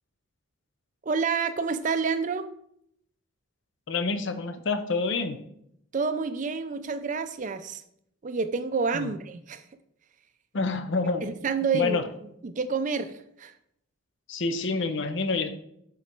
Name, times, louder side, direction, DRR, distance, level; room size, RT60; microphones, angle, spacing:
voice 1, 1.0-2.5 5.9-7.8 8.2-9.6 11.2-12.0 12.4-13.5, right 5 dB, 35° right, 11 dB, 0.4 m, -28 dB
voice 2, 3.9-5.4 8.9-9.1 10.5-11.3 11.7-12.1 14.3-15.5, left 3 dB, 60° left, 10 dB, 0.6 m, -27 dB
7.4 x 4.0 x 4.4 m, 0.73 s
head